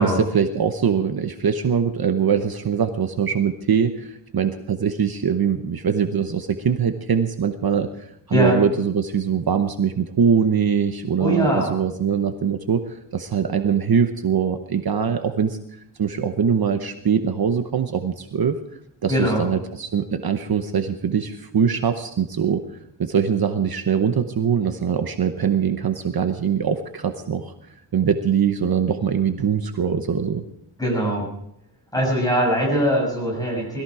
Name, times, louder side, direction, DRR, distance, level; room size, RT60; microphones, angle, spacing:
voice 1, 0.0-18.6 19.0-27.5 27.9-30.4, right 7 dB, 50° right, 7 dB, 0.9 m, -22 dB
voice 2, 11.2-11.7 19.1-19.4 30.8-31.3 31.9-33.8, equal, 10° left, -2 dB, 6.9 m, -21 dB
20.5 x 14.5 x 4.9 m, 0.77 s
wide cardioid pair, 175°, 46 cm